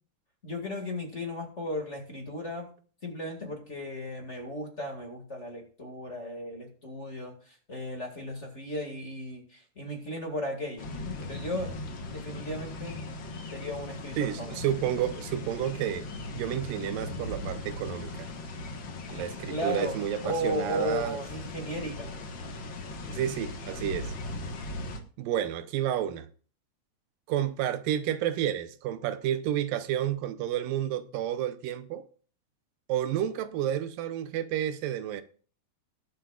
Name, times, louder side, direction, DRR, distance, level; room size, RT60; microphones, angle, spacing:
voice 1, 0.4-2.7 3.0-7.3 7.7-10.9 11.2-11.8 12.1-13.0 13.5-14.6 19.5-20.0 20.2-22.1, equal, 30° left, 1.6 m, -35 dB
sound 1, 10.8-25.0, left 2 dB, 55° left, 1.4 m, -38 dB
voice 2, 14.2-16.1 16.3-18.3 19.1-21.2 23.1-24.1 25.2-26.3 27.3-32.0 32.9-35.2, right 11 dB, 85° right, 2.5 m, -30 dB
21.0 x 7.5 x 2.4 m
omnidirectional pair, 3.9 m